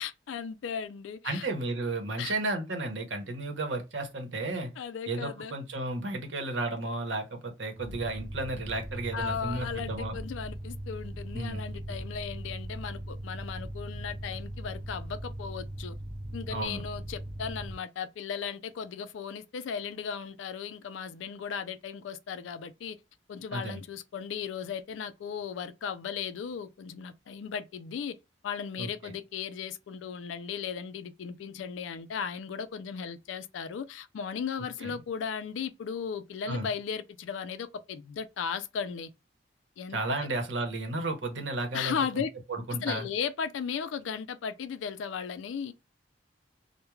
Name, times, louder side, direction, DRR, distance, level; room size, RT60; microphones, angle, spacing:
voice 1, 0.0-1.5 2.2-2.3 4.8-5.5 9.1-16.0 16.3-23.0 23.3-28.1 28.4-39.1 39.8-40.3 41.7-42.3 42.8-45.7, left 7 dB, 90° left, 0.3 m, -36 dB
voice 2, 1.2-4.7 5.1-10.1 11.3-11.6 16.5-16.8 23.5-23.8 28.8-29.1 34.8-34.9 36.5-36.7 39.9-42.0 42.5-43.1, right 2 dB, 80° right, 0.8 m, -33 dB
sound 1, 7.8-17.7, right 1 dB, 20° right, 0.4 m, -39 dB
2.3 x 2.2 x 3.0 m
head